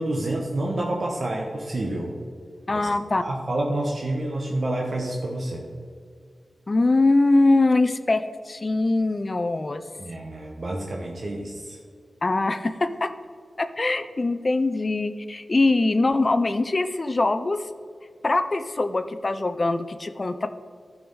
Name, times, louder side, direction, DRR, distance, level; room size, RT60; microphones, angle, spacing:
voice 1, 0.0-2.1 2.7-2.9 3.2-5.6 10.0-11.8, right 1 dB, 65° right, -1 dB, 1.1 m, -28 dB
voice 2, 2.7-3.2 6.7-9.8 12.2-13.1 13.6-17.7 18.2-20.5, left 2 dB, 45° left, 10 dB, 0.5 m, -22 dB
11.0 x 4.8 x 5.4 m, 2.1 s
cardioid pair, 60°, 0 cm